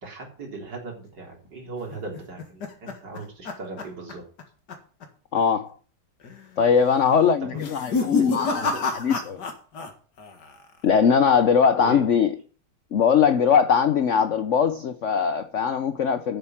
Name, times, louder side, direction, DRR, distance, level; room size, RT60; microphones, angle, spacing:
voice 1, 0.0-4.2 7.4-7.6 8.0-8.8 11.8-12.0, right 3 dB, 55° right, 4.2 m, -38 dB
sound 1, 1.9-4.4 4.7-5.1 5.4-5.5 6.2-6.6 7.5-9.9 10.2-10.8, left 4 dB, 55° left, 2.2 m, -30 dB
voice 2, 5.3-5.8 6.6-8.6 8.9-9.4 10.8-12.3 12.9-16.4, left 7 dB, 90° left, 0.6 m, -20 dB
8.8 x 7.5 x 7.5 m
omnidirectional pair, 2.3 m